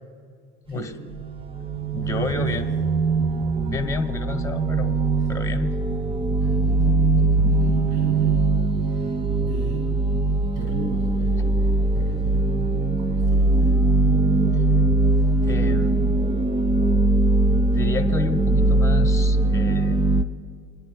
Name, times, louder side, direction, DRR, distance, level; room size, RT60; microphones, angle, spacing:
sound 1, 0.7-20.2, right 2 dB, 15° right, 0.5 m, -21 dB
voice 1, 0.7-1.2 2.0-2.7 5.2-5.3 6.4-9.2 9.5-9.9 10.5-14.0 15.1-15.3, right 2 dB, 50° right, 0 dB, 2.0 m, -38 dB
voice 2, 1.9-2.6 3.7-5.0 5.3-5.8 15.4-16.3 17.4-20.1, left 4 dB, 10° left, 6 dB, 1.1 m, -30 dB
25.5 x 10.0 x 2.3 m, 2.1 s
hypercardioid pair, 75°, 34 cm